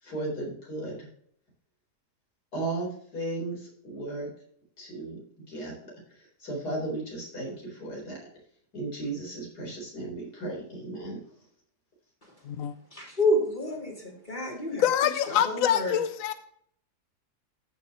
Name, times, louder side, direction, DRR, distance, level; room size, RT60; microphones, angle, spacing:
voice 1, 0.0-1.1 2.5-4.3 4.8-5.2 5.5-5.7 6.1-8.2 8.7-11.2, right 2 dB, 85° left, -2 dB, 4.8 m, -35 dB
voice 2, 12.9-16.0, left 1 dB, 30° left, -3 dB, 2.7 m, -29 dB
voice 3, 14.8-16.3, left 10 dB, 70° left, 11 dB, 0.9 m, -25 dB
14.5 x 6.7 x 3.1 m, 0.64 s
omnidirectional pair, 1.7 m